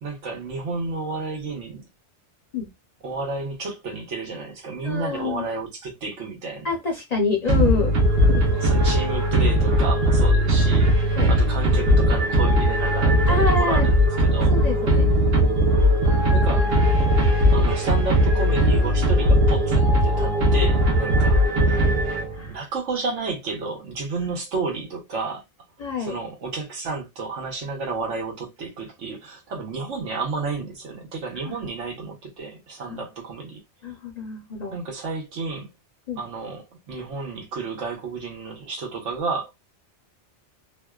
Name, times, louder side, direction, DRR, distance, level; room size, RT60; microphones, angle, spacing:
voice 1, 0.0-1.8 3.0-6.7 8.6-14.0 14.2-14.5 16.3-16.7 17.5-21.8 22.2-25.4 26.0-33.6 34.7-35.7 36.2-39.5, right 4 dB, 85° right, 1.2 m, -31 dB
voice 2, 4.8-5.5 6.6-7.9 8.2-8.4 11.1-11.3 13.3-13.9 14.5-15.1 21.9-22.0 22.3-22.6 25.8-26.2 31.5-31.6 32.8-33.0 33.8-34.7 36.1-36.2, left 4 dB, 50° left, 0.5 m, -27 dB
sound 1, 7.5-22.5, equal, 70° right, 1.0 m, -19 dB
2.5 x 2.2 x 2.2 m
omnidirectional pair, 1.2 m